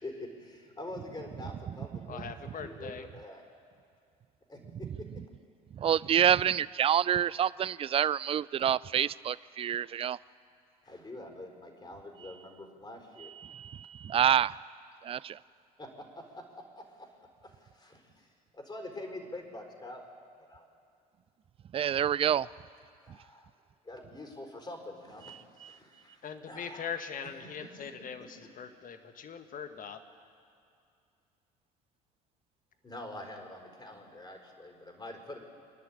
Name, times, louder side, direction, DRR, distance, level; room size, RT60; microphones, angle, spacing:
voice 1, 0.0-3.4 4.5-5.1 10.8-13.3 15.8-16.4 16.8-17.1 17.4-20.0 20.4-20.7 23.1-23.5 23.8-26.9 28.4-28.5 32.8-35.4, left 1 dB, 20° left, 3 dB, 4.7 m, -45 dB
voice 2, 2.1-3.1 26.2-30.0, left 7 dB, 40° left, 8 dB, 1.7 m, -41 dB
voice 3, 5.8-10.2 13.5-13.7 14.0-14.5 15.1-15.3 21.7-22.5, right 9 dB, 30° right, 21 dB, 0.4 m, -27 dB
26.5 x 11.0 x 8.8 m, 2.4 s
hypercardioid pair, 60°, 21 cm